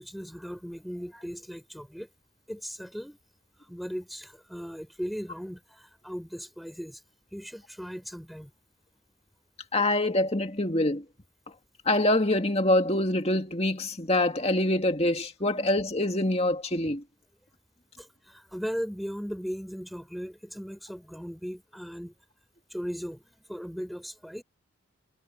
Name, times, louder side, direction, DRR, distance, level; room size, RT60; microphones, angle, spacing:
voice 1, 0.0-2.1 2.5-3.2 3.5-7.0 7.3-8.5 18.0-22.1 22.7-24.4, equal, ahead, 4.0 m, -38 dB
voice 2, 9.7-11.0 11.9-17.0, left 1 dB, 30° left, 2.3 m, -25 dB
head